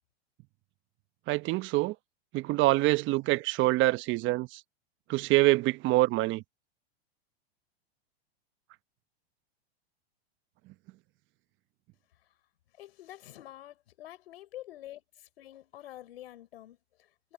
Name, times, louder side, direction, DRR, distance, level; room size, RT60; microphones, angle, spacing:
voice 1, 1.3-1.9 2.3-4.6 5.1-6.4, right 19 dB, 40° right, 1.1 m, -25 dB
voice 2, 12.8-17.3, left 14 dB, 70° left, 4.7 m, -48 dB
hypercardioid pair, 115°, 32 cm